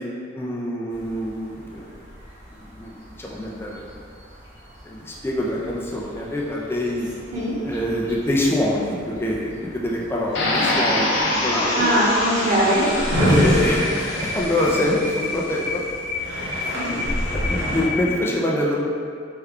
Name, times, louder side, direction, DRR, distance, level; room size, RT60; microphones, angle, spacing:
voice 1, 0.0-1.9 2.5-3.9 4.8-7.1 7.6-11.9 13.3-15.8 16.2-16.3 16.7-16.8 17.0-18.7, left 1 dB, 10° left, -3 dB, 0.3 m, -25 dB
sound 1, 0.9-18.2, left 3 dB, 15° right, 0.8 m, -36 dB
sound 2, 10.3-15.3, left 1 dB, 65° left, 0.6 m, -25 dB
voice 2, 11.7-13.3 16.7-17.0, equal, 40° right, -9 dB, 1.0 m, -21 dB
Drawer open or close, 12.6-15.4 15.9-16.0 16.1-17.9, equal, 75° right, 1.1 m, -24 dB
3.3 x 2.2 x 3.6 m, 2.2 s
head